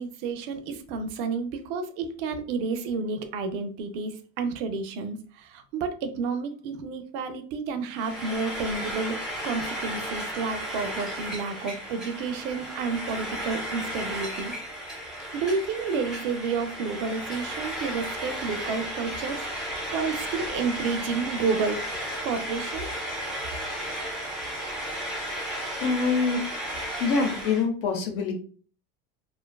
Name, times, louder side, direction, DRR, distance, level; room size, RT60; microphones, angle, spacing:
voice 1, 0.0-14.5 15.3-19.4 19.9-22.9, right 4 dB, 65° right, 8 dB, 0.5 m, -30 dB
Frying (food), 7.9-27.7, equal, ahead, 0.4 m, -34 dB
voice 2, 25.0-25.5 25.8-26.7 27.0-28.3, left 4 dB, 55° left, 5 dB, 0.7 m, -26 dB
2.5 x 2.3 x 2.2 m, 0.41 s
cardioid pair, 170°, 31 cm